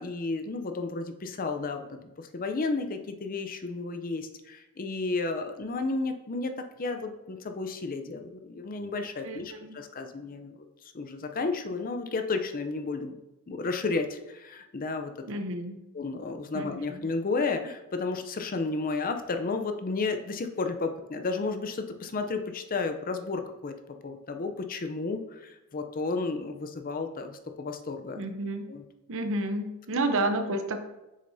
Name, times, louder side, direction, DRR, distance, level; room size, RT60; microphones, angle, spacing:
voice 1, 0.0-1.9 2.2-10.5 10.8-13.2 13.5-15.3 15.9-23.7 24.0-28.2 28.7-28.8, left 3 dB, 40° left, 7 dB, 0.6 m, -32 dB
voice 2, 9.2-9.8 15.3-15.8 16.5-17.1 28.2-28.7 29.1-30.8, right 2 dB, 65° right, 7 dB, 0.8 m, -31 dB
7.9 x 6.3 x 2.7 m, 1.0 s
head